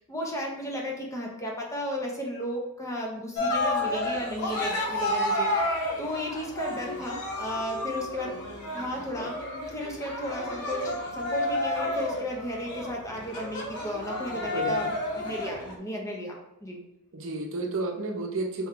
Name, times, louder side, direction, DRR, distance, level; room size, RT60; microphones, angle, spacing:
voice 1, 0.0-8.3 8.7-9.4 9.7-14.9 15.2-16.8, equal, 15° left, -1 dB, 0.6 m, -34 dB
Cheering, 3.4-15.8, left 1 dB, 75° left, 0.8 m, -31 dB
voice 2, 14.5-14.9 17.1-18.7, right 2 dB, 60° right, 3 dB, 0.7 m, -31 dB
4.2 x 2.3 x 3.6 m, 0.90 s
head